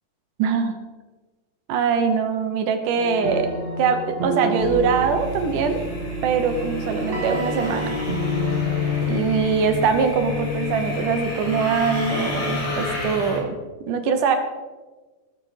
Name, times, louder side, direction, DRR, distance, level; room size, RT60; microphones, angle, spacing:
voice 1, 0.4-0.8 1.7-3.5 3.8-5.8 6.2-7.9 9.1-13.6 13.9-14.4, right 6 dB, 70° right, 6 dB, 2.4 m, -22 dB
sound 1, 2.9-9.6, right 2 dB, 40° right, 1.1 m, -30 dB
sound 2, 4.6-13.4, left 3 dB, 50° left, 4.4 m, -28 dB
20.0 x 7.5 x 4.2 m, 1.3 s
omnidirectional pair, 4.2 m